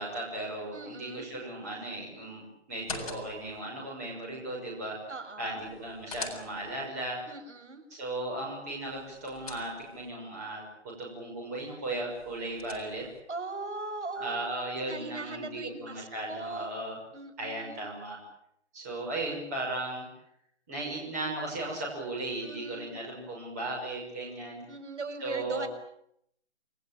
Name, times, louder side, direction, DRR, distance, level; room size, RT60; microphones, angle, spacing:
voice 1, 0.0-5.0 5.4-7.2 7.9-13.1 14.2-17.0 17.4-18.2 18.7-20.0 20.7-24.6 25.2-25.7, right 2 dB, 15° right, -3 dB, 6.1 m, -36 dB
voice 2, 0.7-1.3 5.1-5.6 7.3-7.8 13.3-14.3 14.7-16.8 17.1-17.8 22.4-22.9 24.7-25.7, right 3 dB, 80° right, 9 dB, 6.2 m, -39 dB
sound 1, 2.7-3.6 5.6-6.9 8.9-10.1 12.1-13.2, left 4 dB, 30° left, 4.3 m, -44 dB
28.0 x 20.5 x 8.9 m, 0.75 s
hypercardioid pair, 180°, 35 cm